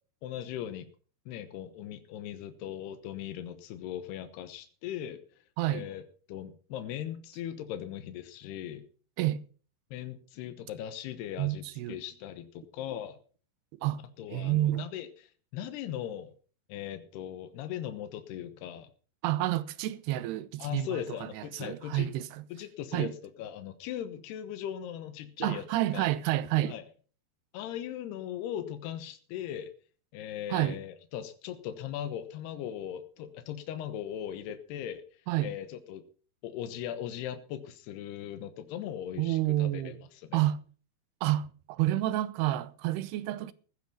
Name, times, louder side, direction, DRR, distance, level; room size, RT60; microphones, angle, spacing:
voice 1, 0.2-0.9 1.3-5.2 5.7-6.0 6.3-8.9 9.9-13.2 14.2-15.1 15.5-16.3 16.7-18.9 20.6-22.1 22.5-23.1 23.4-25.6 25.9-26.1 26.7-26.8 27.5-29.7 30.1-35.0 35.4-36.0 36.4-40.4, left 10 dB, 85° left, 3.2 m, -39 dB
voice 2, 5.6-5.9 9.2-9.4 11.4-12.0 13.7-14.0 14.3-14.9 19.2-22.4 22.9-23.1 25.4-26.8 30.5-30.8 35.3-35.5 39.2-40.0 40.3-40.6 41.2-43.5, right 14 dB, 90° right, 2.8 m, -29 dB
15.5 x 10.5 x 5.5 m
omnidirectional pair, 4.6 m